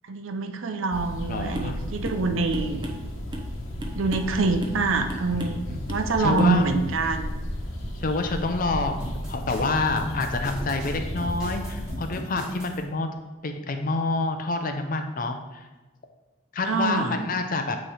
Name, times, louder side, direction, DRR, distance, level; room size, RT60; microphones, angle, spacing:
voice 1, 0.1-2.9 3.9-7.3 16.6-17.2, right 3 dB, 75° right, 7 dB, 0.6 m, -25 dB
sound 1, 0.9-12.0, left 1 dB, 75° left, 1.1 m, -34 dB
voice 2, 1.3-1.8 5.7-5.9 6.2-6.7 8.0-13.1 13.4-15.7 16.5-17.8, left 3 dB, 40° left, 6 dB, 0.5 m, -27 dB
sound 2, 1.5-1.8 2.0-2.2 2.5-3.5 3.8-4.3 4.6-4.8 5.1-5.6 5.9-6.1 6.4-6.5, right 1 dB, 20° right, 0.7 m, -36 dB
sound 3, 9.0-12.8, equal, 5° right, 2.3 m, -38 dB
8.8 x 3.2 x 4.8 m, 1.2 s
head